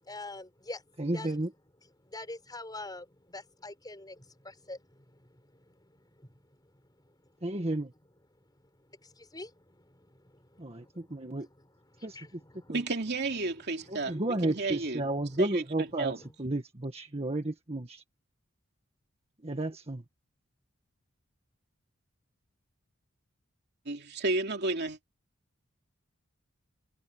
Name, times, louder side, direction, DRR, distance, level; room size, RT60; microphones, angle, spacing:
voice 1, 0.0-0.8 1.1-1.4 2.0-6.4 6.7-6.8 9.0-11.4 11.9-12.8 13.8-14.2 16.2-16.3, left 2 dB, 20° left, 5.6 m, -46 dB
voice 2, 1.0-1.5 7.4-7.9 10.6-11.5 12.0-12.4 12.7-12.8 13.9-16.1 16.4-18.0 19.4-20.0, right 1 dB, 30° right, 1.6 m, -32 dB
voice 3, 12.7-15.0 15.4-15.6 16.0-16.2 23.9-25.0, right 3 dB, 55° right, 2.7 m, -32 dB
head